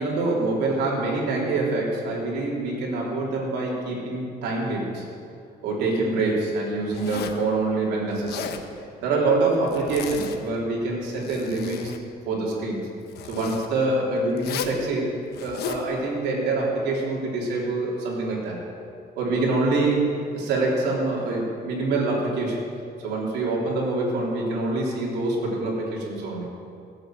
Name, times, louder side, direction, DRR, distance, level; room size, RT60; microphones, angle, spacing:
voice 1, 0.0-5.0 5.6-8.5 9.0-11.9 12.3-12.9 13.3-18.6 19.2-22.6 23.0-26.5, right 2 dB, 85° right, -4 dB, 3.6 m, -25 dB
Zipper (clothing), 6.9-7.5 8.1-8.7 9.7-10.6 11.0-12.0 13.1-13.7 14.4-14.8 15.3-15.9, left 9 dB, 75° left, 1.2 m, -35 dB
17.5 x 7.9 x 7.8 m, 2.5 s
cardioid pair, 110°, 17 cm